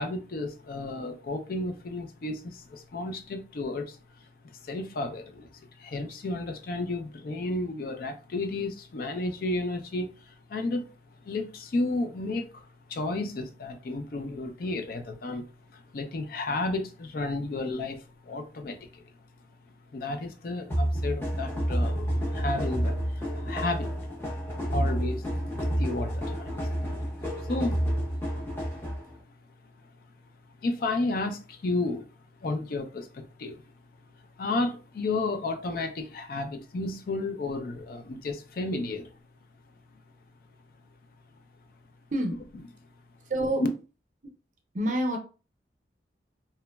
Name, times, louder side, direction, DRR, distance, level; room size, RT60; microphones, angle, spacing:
voice 1, 0.0-4.0 4.5-5.5 5.8-10.9 11.2-15.5 15.7-19.0 19.9-24.1 24.7-27.8 30.6-32.1 32.4-33.6 34.4-39.1, left 2 dB, 55° left, 0.4 m, -32 dB
sound 1, 20.7-29.1, equal, 15° left, 0.7 m, -29 dB
voice 2, 42.1-42.4 43.3-43.6 44.7-45.2, right 1 dB, 45° right, 0.6 m, -27 dB
2.9 x 2.1 x 2.2 m
head